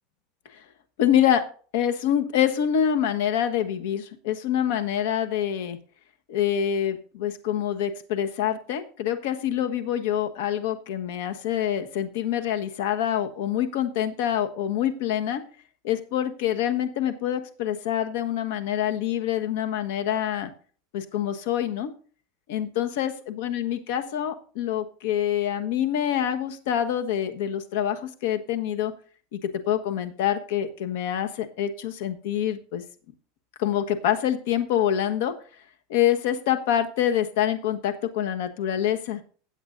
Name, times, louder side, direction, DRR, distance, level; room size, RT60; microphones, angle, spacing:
voice 1, 1.0-1.4 1.7-5.8 6.3-15.4 15.8-20.5 20.9-21.9 22.5-28.9 29.3-32.8 33.6-35.3 35.9-39.2, left 10 dB, 70° left, 8 dB, 1.3 m, -26 dB
16.5 x 8.0 x 2.6 m, 0.41 s
supercardioid pair, 150°, 0 cm